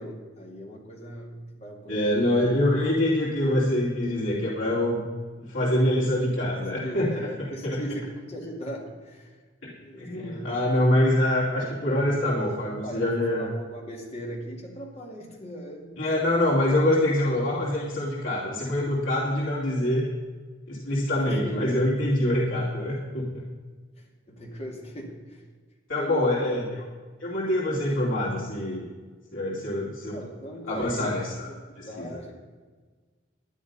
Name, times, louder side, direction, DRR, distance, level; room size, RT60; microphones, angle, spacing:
voice 1, 0.0-2.3 6.8-9.4 9.8-10.6 11.5-16.4 21.1-21.8 24.0-25.4 26.0-26.5 30.1-31.2 31.5-32.3, equal, 30° left, -1 dB, 2.4 m, -39 dB
voice 2, 1.9-5.0 5.4-7.1 7.6-7.8 9.6-9.7 10.0-13.5 16.0-20.1 20.7-23.4 25.9-26.6 27.2-28.9 29.3-30.2 30.7-31.5 31.8-32.1, left 1 dB, 80° left, -7 dB, 2.7 m, -25 dB
11.0 x 11.0 x 5.4 m, 1.4 s
head